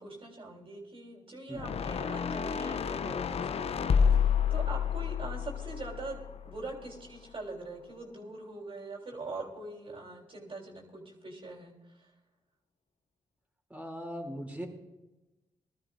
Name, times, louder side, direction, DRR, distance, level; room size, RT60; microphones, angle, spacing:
voice 1, 0.0-6.2 6.4-11.7, right 2 dB, 50° right, -2 dB, 3.2 m, -43 dB
sound 1, 1.6-6.8, left 7 dB, 55° left, 0.5 m, -29 dB
voice 2, 13.7-14.7, equal, 10° right, -2 dB, 2.6 m, -39 dB
20.5 x 13.0 x 2.5 m, 1.0 s
cardioid pair, 60°, 12 cm